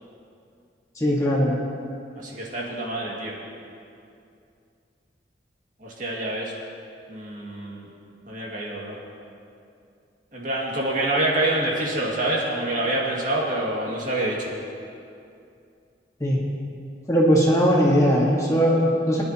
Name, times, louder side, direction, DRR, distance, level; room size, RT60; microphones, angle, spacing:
voice 1, 1.0-1.6 16.2-16.4 17.1-19.2, equal, 20° left, -4 dB, 1.7 m, -19 dB
voice 2, 2.2-3.4 5.8-6.5 7.1-7.9 8.3-9.0 10.3-14.5, right 1 dB, 45° right, -4 dB, 2.2 m, -26 dB
23.0 x 10.5 x 3.0 m, 2.5 s
head